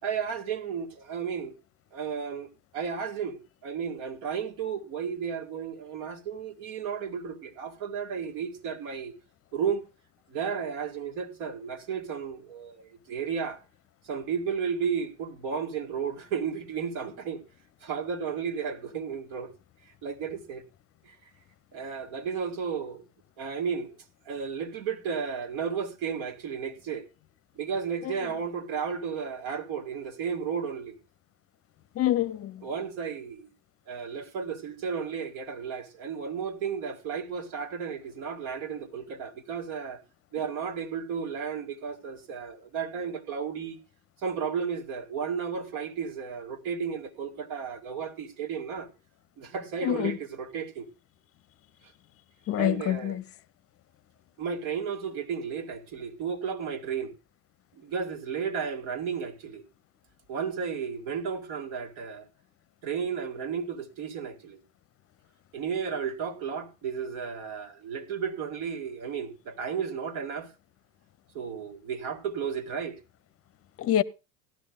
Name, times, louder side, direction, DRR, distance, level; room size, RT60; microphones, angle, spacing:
voice 1, 0.0-1.5 1.9-2.5 2.7-9.1 9.5-9.8 10.3-13.6 14.0-17.4 17.8-19.5 20.0-20.6 21.0-21.2 21.7-23.0 23.4-23.9 24.3-27.0 27.6-31.0 32.6-33.5 33.9-40.0 40.3-43.8 44.2-48.9 49.4-50.9 52.6-53.2 54.4-57.1 57.8-59.6 60.3-62.3 62.8-64.6 65.5-70.5 71.3-73.0, right 6 dB, 65° right, 2.1 m, -33 dB
voice 2, 32.0-32.6 49.8-50.2 52.5-53.2 73.8-74.0, left 12 dB, 30° left, 0.6 m, -26 dB
17.5 x 12.5 x 2.3 m
hypercardioid pair, 90°, 47 cm